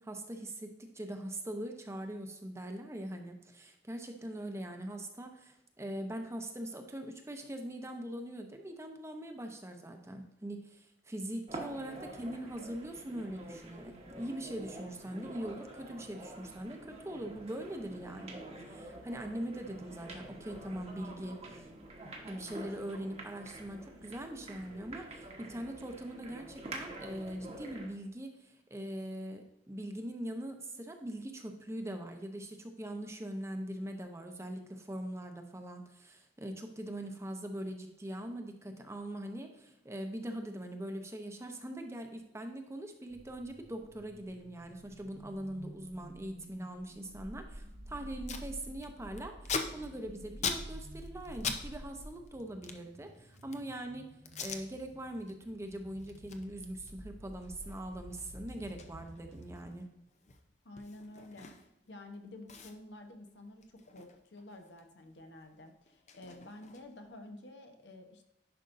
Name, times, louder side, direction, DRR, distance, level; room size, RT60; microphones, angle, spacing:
voice 1, 0.0-18.4 18.7-21.7 22.3-54.1 54.4-59.9, right 1 dB, 15° right, 5 dB, 0.8 m, -42 dB
sound 1, 11.5-28.0, right 2 dB, 35° right, 1.3 m, -47 dB
sound 2, 43.1-59.7, right 1 dB, 85° right, 1.6 m, -50 dB
Packing tape duct tape, 47.7-47.8 48.0-48.5 48.8-51.6 51.9-53.7 54.2-54.6 55.1-55.3 55.7-61.9 62.1-62.2 62.5-64.9 65.1-67.1, left 5 dB, 40° left, 0.7 m, -42 dB
voice 2, 60.6-61.5 61.9-68.2, left 2 dB, 75° left, 5 dB, 1.1 m, -50 dB
10.5 x 5.3 x 2.6 m, 0.87 s
head